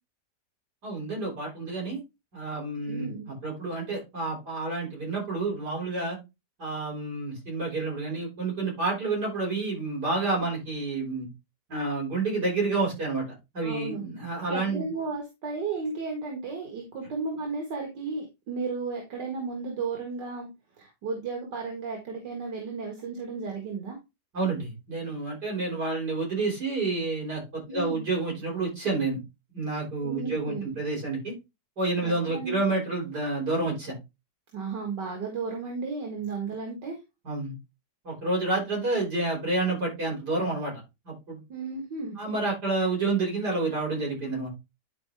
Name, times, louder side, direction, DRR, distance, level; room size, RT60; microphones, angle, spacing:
voice 1, 0.8-2.0 2.3-6.2 6.6-11.3 11.7-13.2 13.5-14.9 24.3-29.2 29.5-31.3 31.8-33.9 37.2-37.5 38.0-40.7 41.1-41.4 42.2-44.5, right 3 dB, 70° right, -1 dB, 5.8 m, -29 dB
voice 2, 2.9-3.3 13.6-14.0 14.5-20.5 20.8-24.0 27.7-28.1 30.0-30.8 32.0-32.6 34.5-37.0 41.5-42.2, right 4 dB, 90° right, 1 dB, 2.3 m, -34 dB
11.0 x 4.7 x 3.4 m, 0.24 s
omnidirectional pair, 1.8 m